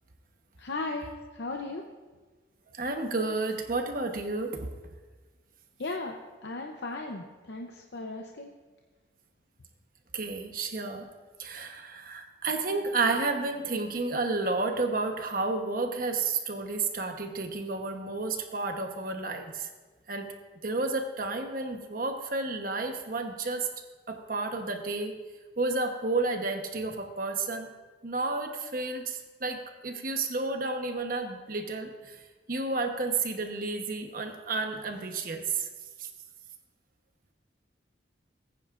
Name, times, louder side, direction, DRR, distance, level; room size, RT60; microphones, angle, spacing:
voice 1, 0.6-1.9 5.8-6.2 6.4-8.6, left 2 dB, 70° left, 2 dB, 0.7 m, -36 dB
voice 2, 2.7-4.7 10.1-11.1 11.4-19.7 20.1-20.3 20.6-23.7 24.1-25.2 25.6-27.7 28.0-32.2 32.5-35.7 36.0-36.1, right 3 dB, 50° right, 4 dB, 1.0 m, -31 dB
19.5 x 9.4 x 2.5 m, 1.3 s
head